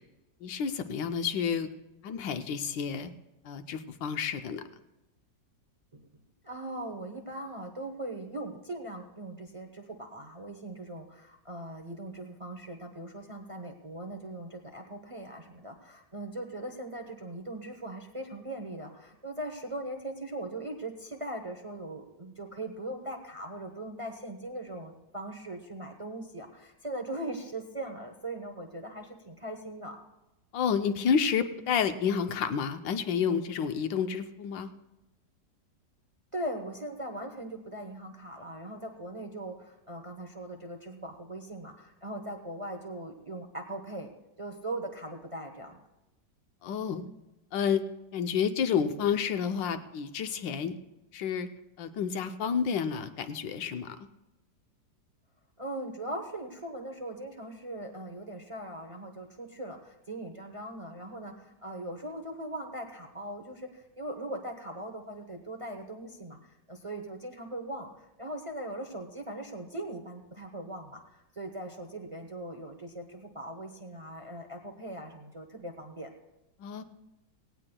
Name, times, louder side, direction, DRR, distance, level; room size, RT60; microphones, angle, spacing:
voice 1, 0.4-1.7 2.0-3.1 3.4-4.6 30.5-34.7 46.6-47.0 47.5-47.8 48.1-50.7 51.1-51.5 51.8-54.0 76.6-76.8, left 7 dB, 90° left, 9 dB, 1.5 m, -30 dB
voice 2, 6.4-30.0 36.3-44.1 44.4-45.8 55.6-66.4 66.7-76.1, right 1 dB, 30° right, 3 dB, 0.6 m, -40 dB
17.5 x 17.5 x 2.3 m, 0.98 s
omnidirectional pair, 1.9 m